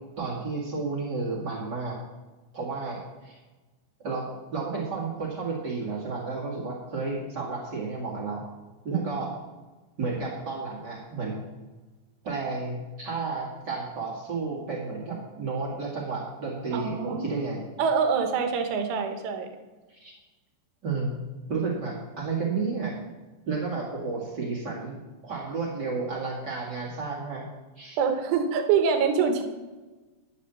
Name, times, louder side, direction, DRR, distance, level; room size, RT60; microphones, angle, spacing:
voice 1, 0.2-1.9 2.5-3.4 4.0-4.3 4.5-8.4 8.8-9.3 10.0-11.4 12.2-17.6 19.9-20.1 20.8-21.2 21.5-22.9 23.5-25.0 25.2-27.4 27.8-28.0, right 4 dB, 45° right, -4 dB, 1.4 m, -32 dB
voice 2, 16.7-17.4 17.8-19.5 28.0-29.4, right 6 dB, 90° right, 5 dB, 3.8 m, -25 dB
10.5 x 8.2 x 7.0 m, 1.2 s
omnidirectional pair, 5.4 m